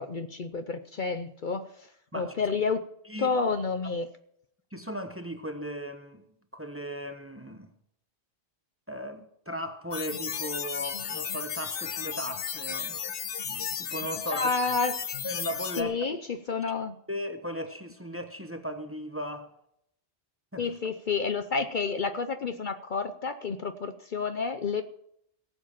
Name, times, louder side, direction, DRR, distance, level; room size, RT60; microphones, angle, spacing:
voice 1, 0.0-1.9 2.1-2.8 3.2-4.1 14.3-14.9 15.8-17.0 20.6-24.8, left 4 dB, 50° left, 0.8 m, -30 dB
voice 2, 3.1-3.4 4.7-6.2 6.5-7.7 8.9-13.0 13.5-14.5 15.2-16.0 17.1-19.5 20.5-20.7, equal, 15° right, 1.0 m, -37 dB
sound 1, 9.9-15.8, left 7 dB, 85° left, 1.2 m, -34 dB
17.5 x 7.6 x 7.3 m
omnidirectional pair, 1.1 m